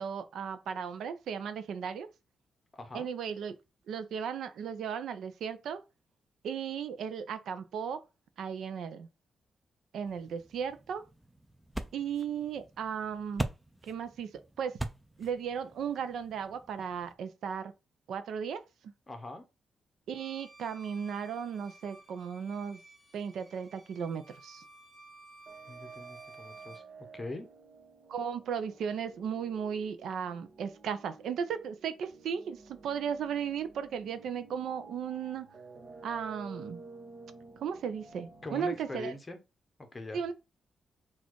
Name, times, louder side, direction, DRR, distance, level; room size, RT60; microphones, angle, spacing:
voice 1, 0.0-2.1 2.9-3.6 3.9-5.8 6.4-8.0 8.4-9.1 9.9-11.0 11.9-13.5 13.8-14.8 15.2-17.7 18.1-18.9 20.1-22.8 23.1-24.6 28.1-35.5 36.0-36.8 37.6-39.1 40.1-40.3, right 7 dB, 85° right, 0.5 m, -36 dB
voice 2, 2.7-3.1 19.1-19.4 25.7-26.8 27.1-27.5 38.4-39.4 39.9-40.2, left 2 dB, 20° left, 0.9 m, -42 dB
sound 1, 10.1-17.1, right 1 dB, 5° right, 0.4 m, -43 dB
Bowed string instrument, 20.1-26.9, right 2 dB, 25° right, 1.2 m, -55 dB
sound 2, 25.5-39.2, right 3 dB, 50° right, 1.1 m, -52 dB
4.1 x 2.4 x 4.5 m
wide cardioid pair, 145°, 0 cm